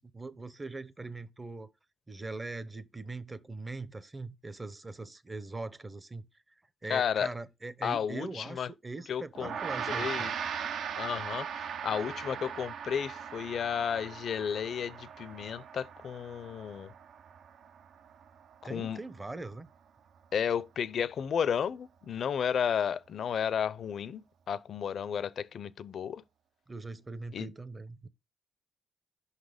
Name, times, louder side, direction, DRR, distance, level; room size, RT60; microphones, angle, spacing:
voice 1, 0.1-1.7 2.1-6.2 6.8-10.3 18.6-19.7 26.7-28.1, right 3 dB, 20° right, 0.6 m, -41 dB
voice 2, 6.9-7.3 7.8-8.7 9.1-9.5 9.9-10.3 11.0-16.9 18.7-19.0 20.3-26.2 27.3-27.5, left 8 dB, 65° left, 0.4 m, -33 dB
Gong, 9.4-18.9, right 7 dB, 75° right, 0.5 m, -39 dB
5.5 x 4.0 x 5.1 m
cardioid pair, 105°, 0 cm